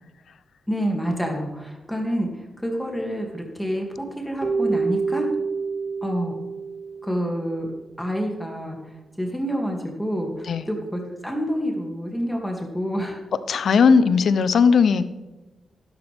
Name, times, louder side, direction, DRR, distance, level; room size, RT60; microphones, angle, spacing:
voice 1, 0.7-2.3 2.6-5.3 6.0-6.3 7.0-7.7 8.0-8.8 9.2-13.2, equal, 5° left, 1 dB, 2.5 m, -28 dB
Keyboard (musical), 4.4-7.7, right 4 dB, 35° right, 1.0 m, -27 dB
voice 2, 13.5-15.1, left 5 dB, 70° left, 14 dB, 0.6 m, -17 dB
11.5 x 11.5 x 3.6 m, 1.1 s
supercardioid pair, 45°, 0 cm